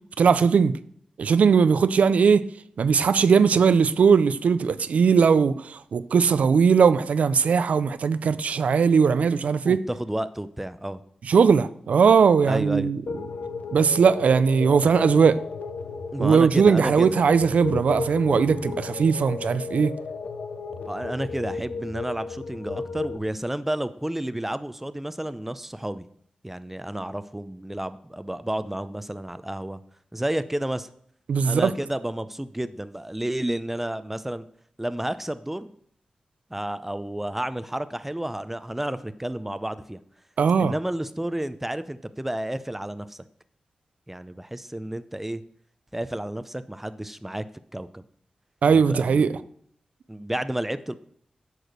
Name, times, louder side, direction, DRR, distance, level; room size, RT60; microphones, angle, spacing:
voice 1, 0.2-0.8 1.2-2.5 2.8-9.8 11.3-13.0 13.7-15.4 16.2-20.0 31.3-31.7 40.4-40.7 48.6-49.3, right 6 dB, 85° right, 0.4 m, -19 dB
voice 2, 9.7-11.0 12.4-12.9 16.1-17.2 20.9-26.0 26.4-29.8 30.1-30.9 31.4-34.5 34.8-35.7 36.5-40.0 40.6-43.2 44.1-45.4 45.9-47.5 47.7-48.0 48.7-49.4 50.1-50.9, right 1 dB, 10° right, 0.5 m, -31 dB
sound 1, 13.1-23.2, left 4 dB, 90° left, 0.7 m, -34 dB
8.7 x 4.9 x 6.6 m
cardioid pair, 65°, 2 cm